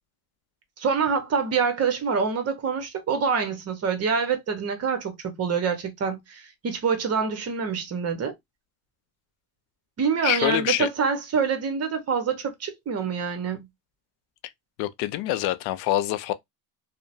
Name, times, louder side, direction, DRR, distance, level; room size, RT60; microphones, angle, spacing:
voice 1, 0.8-8.3 10.0-13.7, right 5 dB, 35° right, 1.0 m, -26 dB
voice 2, 10.2-10.9 14.8-16.3, left 14 dB, 65° left, 0.5 m, -25 dB
2.7 x 2.1 x 2.6 m
supercardioid pair, 85°, 42 cm